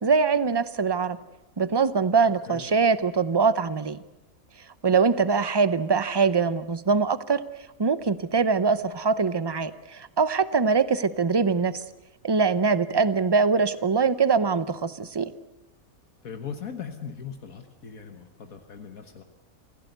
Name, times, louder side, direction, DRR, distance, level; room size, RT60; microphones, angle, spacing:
voice 1, 0.0-1.2 1.6-4.0 4.8-7.4 7.8-11.8 12.2-15.3, right 5 dB, 30° right, 14 dB, 0.5 m, -23 dB
voice 2, 2.5-2.8 16.2-19.2, left 7 dB, 75° left, 6 dB, 1.8 m, -39 dB
26.5 x 16.5 x 8.1 m, 0.98 s
omnidirectional pair, 1.5 m